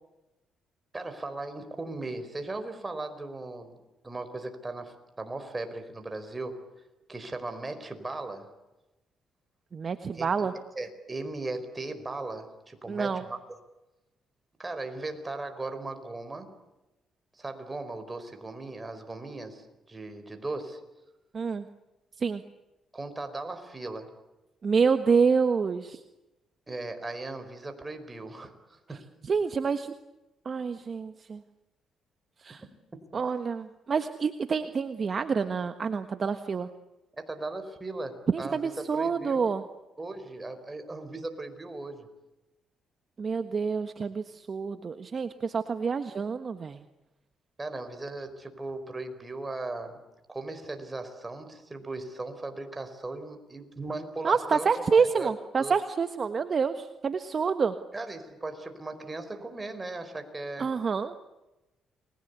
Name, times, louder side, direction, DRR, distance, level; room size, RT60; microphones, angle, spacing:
voice 1, 0.9-3.8 4.0-6.6 7.1-8.5 10.1-10.5 10.7-13.4 14.6-16.5 17.3-20.8 22.9-24.1 26.7-29.0 37.2-39.5 40.0-42.1 47.6-50.0 50.3-55.3 55.6-55.8 57.9-60.7, right 2 dB, 20° right, 8 dB, 4.8 m, -38 dB
voice 2, 9.7-10.5 12.9-13.2 21.3-21.6 22.2-22.4 24.6-26.0 29.3-29.9 30.4-31.4 32.4-32.6 33.1-36.7 38.3-39.6 43.2-46.8 54.2-57.7 60.6-61.1, right 5 dB, 45° right, 9 dB, 1.4 m, -27 dB
30.0 x 21.5 x 8.3 m, 1.0 s
cardioid pair, 90°, 0 cm